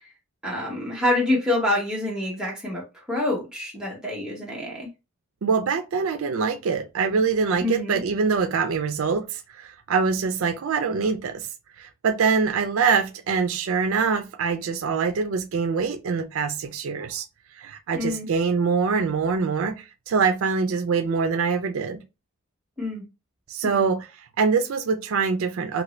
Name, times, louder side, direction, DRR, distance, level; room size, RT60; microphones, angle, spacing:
voice 1, 0.4-4.9 7.6-8.0 17.9-18.3 22.8-23.0 23.6-23.8, left 1 dB, 5° right, 1.0 m, -27 dB
voice 2, 5.4-11.5 11.8-17.3 17.6-22.0 23.5-24.1 24.4-25.8, right 5 dB, 75° right, 0.4 m, -24 dB
2.9 x 2.6 x 3.1 m
head